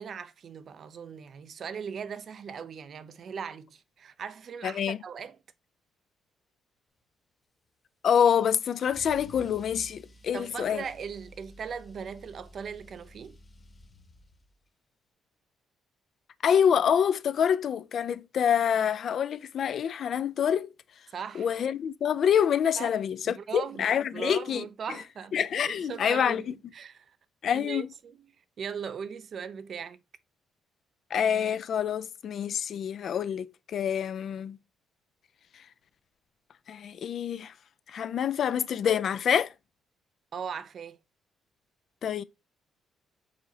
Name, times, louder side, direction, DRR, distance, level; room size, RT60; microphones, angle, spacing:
voice 1, 0.0-5.4 10.3-13.4 21.1-21.5 22.8-23.0 23.3-25.4 25.6-27.1 27.5-28.2 28.6-30.0 40.3-41.0, right 6 dB, 50° right, 0.4 m, -39 dB
voice 2, 4.6-5.0 8.0-10.8 16.4-20.7 21.3-24.6 25.3-26.5 27.4-27.9 31.1-34.6 36.7-37.5 37.9-39.5 42.0-42.2, left 8 dB, 55° left, 0.4 m, -26 dB
Car / Engine starting / Accelerating revving vroom, 8.2-14.6, left 1 dB, 30° left, 0.7 m, -52 dB
4.8 x 4.1 x 2.7 m
cardioid pair, 105°, 0 cm